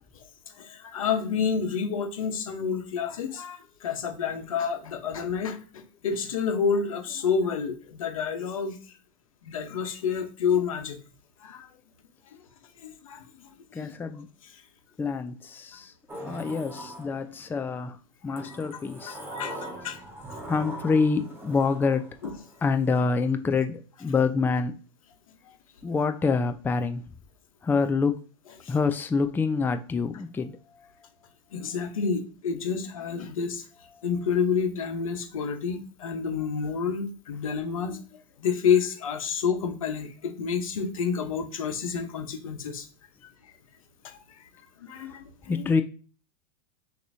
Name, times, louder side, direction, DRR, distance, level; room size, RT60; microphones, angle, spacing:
voice 1, 0.5-8.8 9.4-11.0 11.4-11.7 12.8-13.9 14.4-14.5 18.3-18.5 19.1-20.0 22.2-22.3 28.6-28.7 31.5-33.6 34.0-38.0 38.4-42.9 43.4-43.5 44.0-44.5 44.8-45.6, left 6 dB, 90° left, 5 dB, 1.0 m, -29 dB
voice 2, 13.7-14.3 15.0-15.9 16.2-19.2 20.5-22.1 22.6-24.7 25.8-27.0 27.6-28.2 28.7-30.9 34.0-34.1 45.0-45.1 45.5-45.8, left 4 dB, 10° left, 8 dB, 0.4 m, -26 dB
Sliding door, 16.1-17.6 18.3-23.0, right 1 dB, 15° right, 1.4 m, -41 dB
5.9 x 2.9 x 2.7 m, 0.38 s
hypercardioid pair, 110°, 17 cm